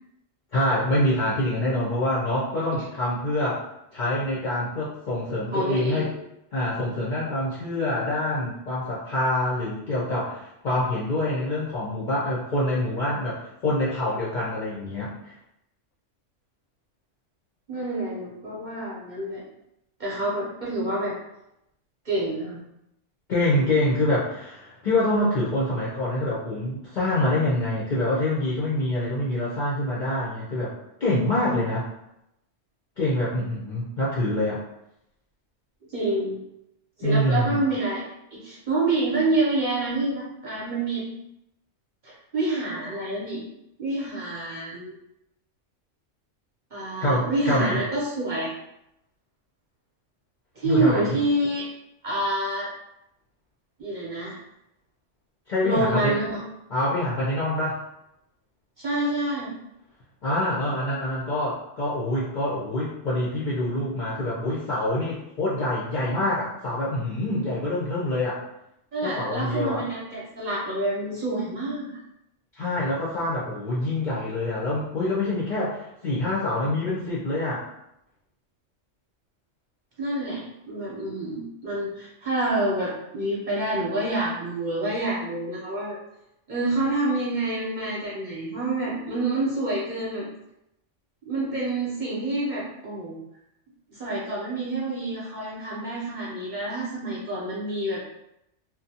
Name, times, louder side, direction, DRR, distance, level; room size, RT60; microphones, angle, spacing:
voice 1, 0.5-3.6 3.9-6.1 6.5-15.3 23.3-30.7 31.0-31.9 33.0-34.6 37.0-37.6 47.0-47.8 50.6-51.2 55.5-56.2 56.7-57.8 60.2-68.4 69.0-69.9 72.6-77.6, left 1 dB, 55° left, -7 dB, 0.5 m, -26 dB
voice 2, 5.5-6.1 17.7-19.4 20.0-21.1 22.0-22.6 35.9-36.4 37.0-38.0 38.3-41.0 42.0-43.4 43.8-44.9 46.7-48.5 50.6-51.6 52.0-52.7 53.8-54.4 55.6-56.4 58.8-59.5 68.9-71.9 80.0-86.0 86.5-90.3 91.2-93.2 93.9-98.0, right 2 dB, 45° right, -6 dB, 0.7 m, -27 dB
2.5 x 2.1 x 2.7 m, 0.83 s
omnidirectional pair, 1.3 m